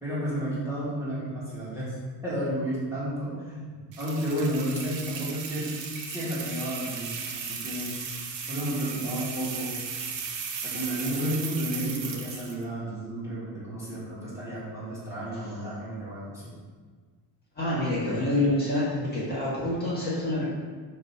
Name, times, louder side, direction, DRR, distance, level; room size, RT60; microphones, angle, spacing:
voice 1, 0.0-1.9 2.2-5.7 6.1-7.9 8.5-9.7 10.6-16.5, equal, 5° right, -10 dB, 1.8 m, -32 dB
sound 1, 3.9-12.6, right 6 dB, 65° right, 1.1 m, -36 dB
voice 2, 17.6-20.4, left 1 dB, 20° left, -9 dB, 1.7 m, -27 dB
7.5 x 3.1 x 6.0 m, 1.5 s
cardioid pair, 175°, 48 cm